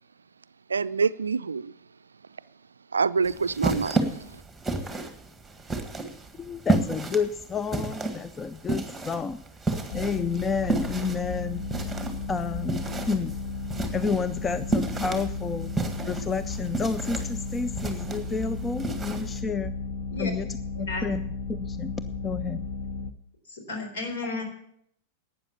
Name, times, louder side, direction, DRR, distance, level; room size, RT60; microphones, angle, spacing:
voice 1, 0.7-1.7 2.9-4.0, right 5 dB, 75° right, 0.4 m, -25 dB
sound 1, 3.2-19.4, right 3 dB, 5° right, 1.7 m, -32 dB
voice 2, 6.4-9.4 9.9-11.9 12.3-13.3 13.9-15.7 16.1-19.7 20.2-20.5 20.8-21.9 22.2-22.7, left 5 dB, 20° left, 0.4 m, -30 dB
sound 2, 9.9-23.1, left 4 dB, 45° left, 1.0 m, -34 dB
voice 3, 23.5-24.4, left 3 dB, 60° left, 3.8 m, -33 dB
12.0 x 8.7 x 7.0 m
figure-of-eight pair, 95°, 0 cm